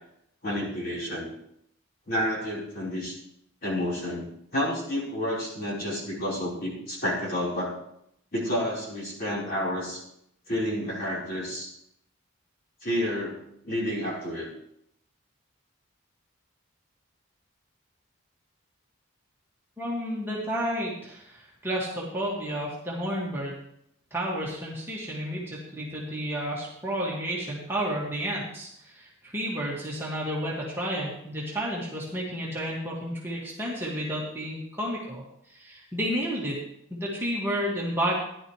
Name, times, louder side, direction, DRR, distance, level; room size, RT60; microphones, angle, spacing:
voice 1, 0.4-1.3 2.1-3.1 3.6-4.3 4.5-7.8 8.3-10.0 10.5-11.7 12.8-14.5, equal, 45° left, -5 dB, 4.4 m, -30 dB
voice 2, 19.8-23.6 24.1-36.6 36.9-38.1, equal, 10° right, -5 dB, 1.9 m, -31 dB
15.0 x 11.0 x 3.3 m, 0.75 s
head